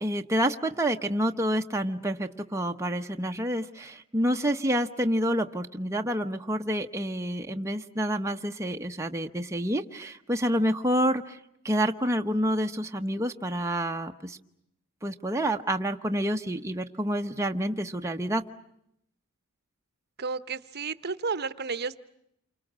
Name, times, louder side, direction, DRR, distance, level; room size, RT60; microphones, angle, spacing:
voice 1, 0.0-11.4 11.6-14.4 15.0-18.4, equal, 15° right, 4 dB, 1.0 m, -28 dB
voice 2, 20.2-22.0, right 4 dB, 45° right, 13 dB, 1.0 m, -32 dB
29.0 x 25.5 x 7.5 m, 0.77 s
head